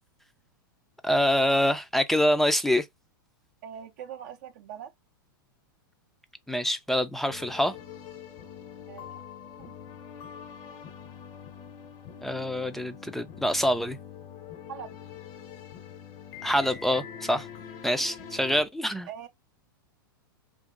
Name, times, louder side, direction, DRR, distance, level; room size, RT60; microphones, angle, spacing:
voice 1, 1.0-2.9 6.5-7.8 12.2-14.0 16.4-17.5 17.8-19.1, equal, ahead, 0.4 m, -25 dB
voice 2, 3.6-4.9 8.9-9.2 9.6-9.8 10.6-10.9 14.7-15.0 19.1-19.3, right 9 dB, 55° right, 0.5 m, -42 dB
sound 1, 7.3-18.6, left 8 dB, 45° left, 0.7 m, -44 dB
2.8 x 2.6 x 2.4 m
hypercardioid pair, 105°, 12 cm